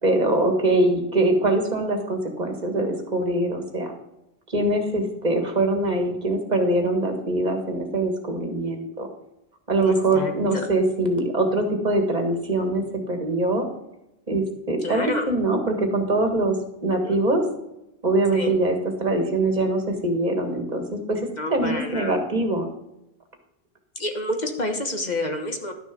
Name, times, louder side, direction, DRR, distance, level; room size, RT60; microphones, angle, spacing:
voice 1, 0.0-3.9 4.5-9.1 9.7-13.7 14.3-16.6 16.8-17.4 18.0-22.7, right 2 dB, 45° right, 4 dB, 1.9 m, -23 dB
voice 2, 9.8-10.7 14.8-15.3 17.0-17.1 18.3-18.5 21.4-22.2 23.9-25.7, left 2 dB, 45° left, 4 dB, 1.4 m, -29 dB
12.0 x 6.4 x 5.3 m, 0.86 s
omnidirectional pair, 1.0 m